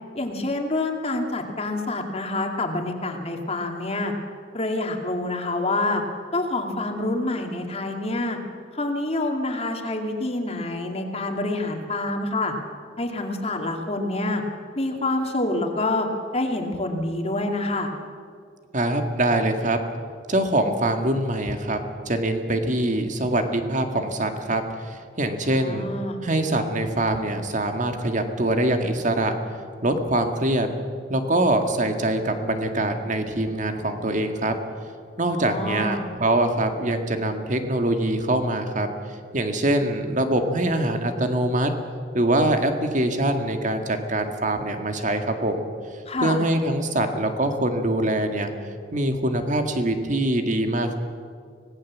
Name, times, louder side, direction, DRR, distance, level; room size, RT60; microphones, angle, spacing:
voice 1, 0.1-4.1 4.5-6.0 6.3-8.4 8.8-12.5 13.0-14.4 14.8-16.1 16.3-17.9 25.5-26.2 35.2-36.0 46.1-46.4, left 2 dB, 35° left, 3 dB, 2.4 m, -27 dB
voice 2, 18.7-19.8 20.3-21.8 22.1-24.6 24.9-25.9 26.2-29.3 29.8-30.7 31.1-34.5 35.2-38.9 39.3-41.7 42.1-45.7 46.2-48.5 48.9-50.9, right 1 dB, 45° right, 6 dB, 2.0 m, -23 dB
25.0 x 18.5 x 7.5 m, 2.2 s
head